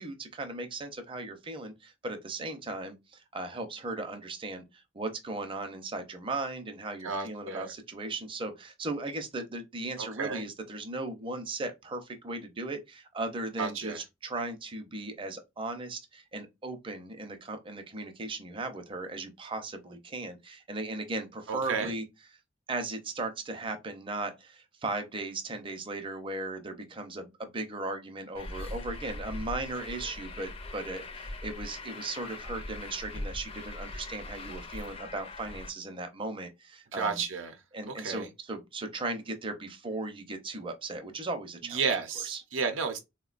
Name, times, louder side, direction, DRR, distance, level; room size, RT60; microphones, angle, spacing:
voice 1, 0.0-22.0 22.7-37.2 37.7-41.8 42.2-42.4, right 2 dB, 25° right, 0.5 m, -37 dB
voice 2, 7.0-7.7 10.0-10.4 13.6-14.0 21.5-21.9 36.9-37.6 37.9-38.3 41.7-43.0, right 5 dB, 80° right, 0.6 m, -32 dB
Truck, 28.3-35.7, left 2 dB, 30° left, 0.4 m, -41 dB
3.5 x 2.1 x 2.4 m
head